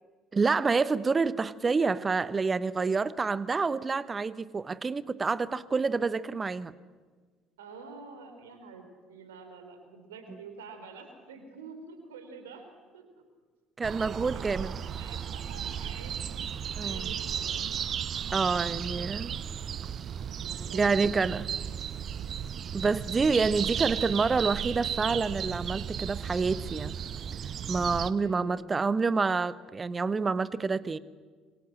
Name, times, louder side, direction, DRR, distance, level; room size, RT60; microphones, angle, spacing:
voice 1, 0.3-6.7 13.8-14.7 16.8-17.1 18.3-19.3 20.7-21.5 22.7-26.9 27.7-31.0, right 4 dB, 25° right, 17 dB, 1.1 m, -28 dB
voice 2, 7.6-12.6 12.9-13.0 13.9-17.7 18.6-19.6 20.2-21.4 28.1-28.7, right 4 dB, 70° right, 6 dB, 4.3 m, -48 dB
sound 1, 13.8-28.1, right 8 dB, 45° right, 1.0 m, -35 dB
27.5 x 24.5 x 7.7 m, 1.5 s
figure-of-eight pair, 55°, 0 cm